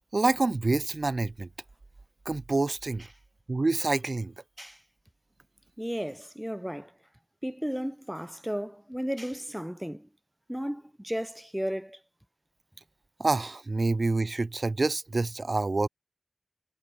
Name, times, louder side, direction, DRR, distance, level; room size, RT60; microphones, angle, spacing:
voice 1, 0.1-1.5 2.3-3.1 3.5-4.3 13.2-15.9, right 3 dB, 55° right, 2.3 m, -27 dB
voice 2, 5.8-6.9 7.4-10.1 10.5-12.0, equal, 5° right, 3.0 m, -34 dB
wide cardioid pair, 50°, 0 cm